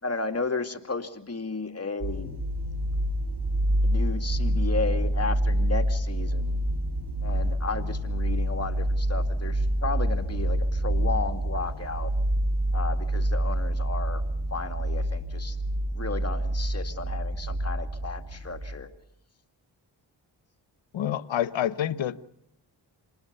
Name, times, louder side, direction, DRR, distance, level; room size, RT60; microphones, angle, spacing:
voice 1, 0.0-2.4 3.8-6.6 7.2-12.1 12.7-14.2 14.5-15.6 15.9-18.9, left 4 dB, 30° left, 2.4 m, -33 dB
sound 1, 2.0-18.8, right 1 dB, 55° right, 4.1 m, -27 dB
voice 2, 20.9-22.3, left 11 dB, 75° left, 1.0 m, -28 dB
27.0 x 20.0 x 6.8 m
supercardioid pair, 45°, 46 cm